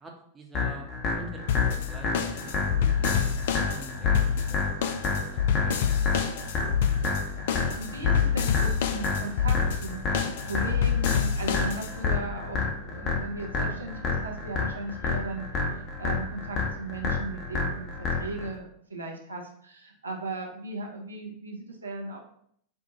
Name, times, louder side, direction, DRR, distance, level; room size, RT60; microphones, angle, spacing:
voice 1, 0.0-4.7 5.0-5.3 5.6-6.4, right 2 dB, 15° right, 0 dB, 0.7 m, -47 dB
sound 1, 0.5-18.5, left 4 dB, 30° left, 0.8 m, -30 dB
sound 2, 1.5-12.2, left 8 dB, 55° left, 0.3 m, -27 dB
voice 2, 7.3-15.5 16.0-22.2, right 2 dB, 75° right, 0 dB, 0.6 m, -37 dB
4.3 x 2.1 x 2.8 m, 0.65 s
figure-of-eight pair, 90°, 0 cm